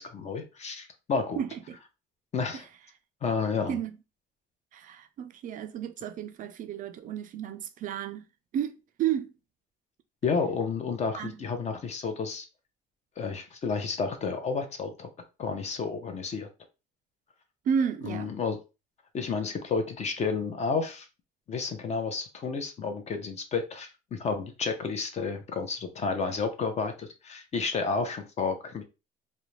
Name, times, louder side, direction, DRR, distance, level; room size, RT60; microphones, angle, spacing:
voice 1, 0.0-1.4 2.3-2.7 3.2-3.8 10.2-12.5 13.2-15.1 15.4-16.5 18.0-18.6 19.1-21.1 21.5-28.8, left 5 dB, 40° left, 0.6 m, -31 dB
voice 2, 1.4-1.8 3.7-3.9 4.7-8.2 8.5-9.3 11.2-11.3 17.7-18.3, right 8 dB, 50° right, 0.4 m, -32 dB
2.5 x 2.1 x 3.0 m
cardioid pair, 110°, 17 cm